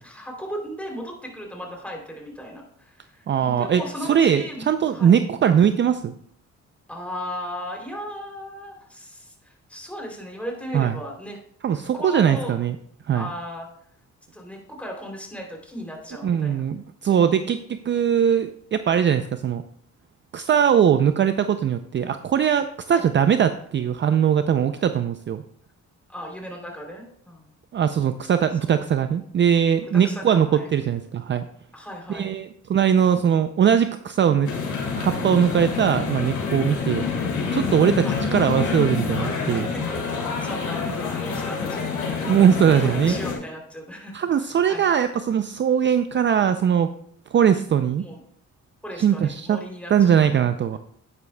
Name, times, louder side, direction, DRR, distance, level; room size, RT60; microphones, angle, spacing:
voice 1, 0.0-5.2 6.9-11.4 11.9-12.6 13.1-13.7 14.3-16.6 22.9-23.1 26.1-27.5 28.6-28.7 29.9-30.7 31.7-32.3 36.6-37.0 38.0-38.2 39.5-39.8 40.2-42.3 42.8-44.1 44.4-44.9 48.0-48.2 48.8-50.1, equal, 5° left, 0 dB, 3.0 m, -36 dB
voice 2, 3.3-3.8 4.1-6.1 10.7-11.0 11.6-12.8 13.1-13.3 16.2-19.6 20.3-25.4 27.7-31.5 32.1-34.5 35.0-37.0 37.5-38.0 38.3-39.7 42.3-43.2 44.1-46.9 47.3-48.0 49.0-49.6 49.9-50.8, right 8 dB, 40° right, 10 dB, 0.4 m, -20 dB
sound 1, 34.4-43.3, left 5 dB, 85° left, 2.6 m, -27 dB
10.5 x 9.5 x 2.2 m, 0.65 s
cardioid pair, 105°, 30 cm